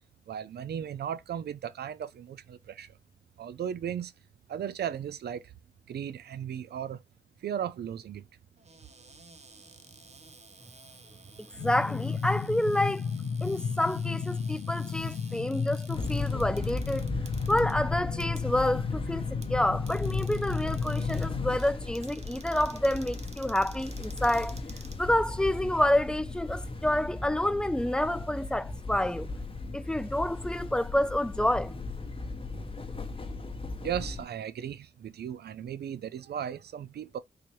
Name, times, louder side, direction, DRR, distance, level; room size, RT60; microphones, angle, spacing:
voice 1, 0.3-2.9 3.4-4.1 4.5-5.4 5.9-7.0 7.4-8.2 33.8-37.2, right 9 dB, 75° right, 0.4 m, -36 dB
Cupboard open or close, 8.6-25.6, right 3 dB, 40° right, 0.8 m, -53 dB
sound 1, 11.6-21.6, left 5 dB, 75° left, 0.5 m, -33 dB
voice 2, 11.6-13.0 13.4-17.1 17.5-24.6 25.0-29.3 29.7-31.8, left 1 dB, 5° left, 0.3 m, -28 dB
sound 2, 15.9-34.3, left 2 dB, 35° left, 1.0 m, -37 dB
3.9 x 2.8 x 3.0 m
cardioid pair, 55°, 17 cm